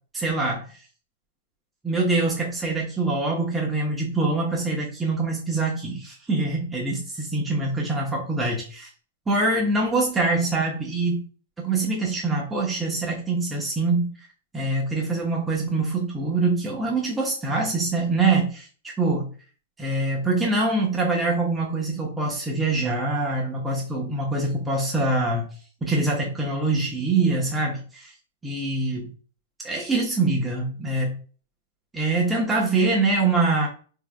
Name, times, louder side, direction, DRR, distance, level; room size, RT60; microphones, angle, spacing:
voice 1, 0.1-0.8 1.8-8.9 9.3-11.2 11.6-14.1 14.5-19.3 19.8-25.5 25.8-28.1 28.4-29.1 29.6-31.2 31.9-33.7, right 3 dB, 10° right, -2 dB, 0.9 m, -24 dB
4.5 x 3.7 x 2.2 m, 0.40 s
figure-of-eight pair, 100°, 0 cm